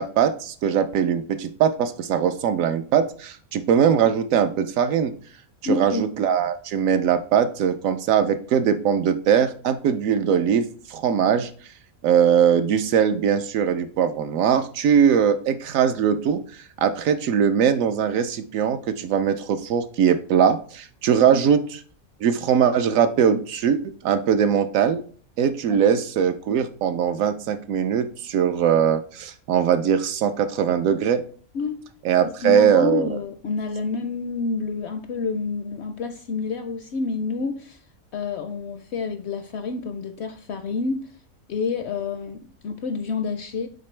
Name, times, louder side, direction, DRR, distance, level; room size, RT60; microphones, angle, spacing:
voice 1, 0.0-5.1 5.6-11.5 12.0-16.4 16.8-21.6 22.2-25.0 25.4-31.2 32.0-33.1, right 8 dB, 70° right, 9 dB, 1.0 m, -21 dB
voice 2, 5.6-6.0 21.3-21.4 25.7-25.8 31.5-31.8 32.2-37.8 38.1-41.1 41.5-43.7, left 4 dB, 65° left, 8 dB, 0.7 m, -28 dB
6.7 x 4.4 x 3.2 m, 0.44 s
omnidirectional pair, 1.5 m